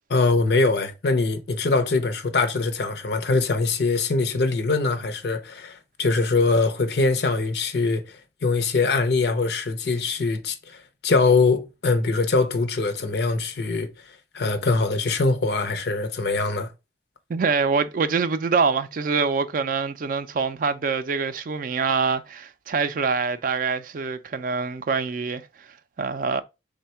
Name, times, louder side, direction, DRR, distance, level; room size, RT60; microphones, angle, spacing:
voice 1, 0.1-8.0 8.4-10.8 11.0-13.9 14.3-16.7, left 3 dB, 65° left, 0.6 m, -22 dB
voice 2, 17.3-25.7 26.0-26.4, right 5 dB, 50° right, 0.4 m, -25 dB
3.4 x 2.2 x 4.2 m
head